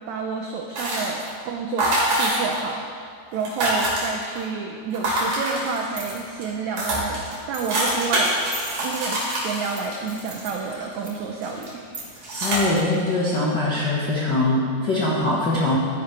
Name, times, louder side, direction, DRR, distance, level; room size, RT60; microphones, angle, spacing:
voice 1, 0.1-3.0 3.3-11.7, right 4 dB, 85° right, 1 dB, 1.6 m, -30 dB
sound 1, 0.8-1.4 1.8-2.7 3.0-3.1 3.3-4.4 4.9-6.0 6.5-6.6 6.8-11.1 11.4-11.7 12.2-12.6, right 1 dB, 60° right, 3.9 m, -25 dB
sound 2, 5.7-13.7, right 2 dB, 35° right, 1.6 m, -42 dB
voice 2, 12.4-15.8, left 2 dB, 65° left, -7 dB, 1.0 m, -22 dB
13.0 x 9.9 x 3.3 m, 2.2 s
omnidirectional pair, 4.2 m